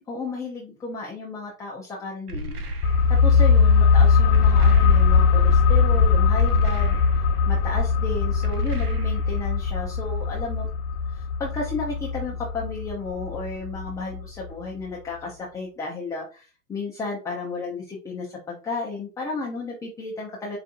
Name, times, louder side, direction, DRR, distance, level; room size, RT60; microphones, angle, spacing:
voice 1, 0.1-2.6 3.1-10.7 11.1-20.6, left 3 dB, 10° left, -3 dB, 0.4 m, -33 dB
sound 1, 2.3-3.4 4.3-5.4 6.4-7.5 8.4-9.5, right 1 dB, 75° right, 1.0 m, -35 dB
sound 2, 2.8-14.2 14.5-14.6, left 5 dB, 75° left, 0.6 m, -20 dB
4.8 x 2.5 x 2.5 m, 0.35 s
hypercardioid pair, 110°, 47 cm